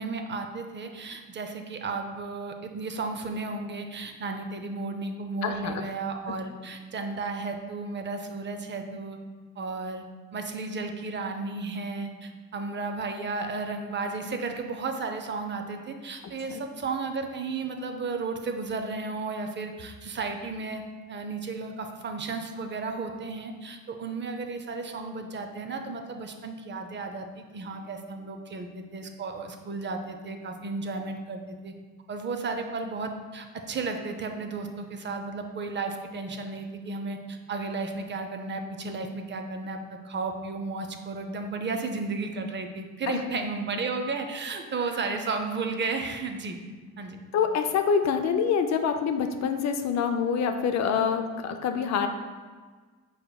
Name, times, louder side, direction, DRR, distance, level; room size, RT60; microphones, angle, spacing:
voice 1, 0.0-9.2 9.6-10.0 10.3-20.8 21.1-31.7 32.1-46.6 47.0-47.2, right 3 dB, 40° right, 5 dB, 0.5 m, -33 dB
voice 2, 5.4-5.8 16.5-16.6 43.1-43.2 47.3-52.1, left 6 dB, 65° left, 7 dB, 0.5 m, -26 dB
4.9 x 4.6 x 2.2 m, 1.4 s
cardioid pair, 90°, 30 cm